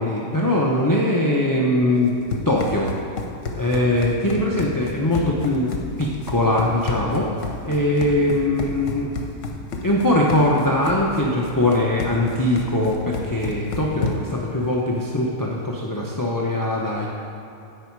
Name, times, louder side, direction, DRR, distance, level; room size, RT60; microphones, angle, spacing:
voice 1, 0.0-2.1 2.5-2.9 3.6-5.7 6.0-7.3 7.6-9.1 9.8-17.1, left 1 dB, 20° left, -3 dB, 0.8 m, -21 dB
Run, 2.0-14.4, left 4 dB, 70° left, 1.3 m, -31 dB
16.0 x 5.6 x 4.7 m, 2.8 s
omnidirectional pair, 1.3 m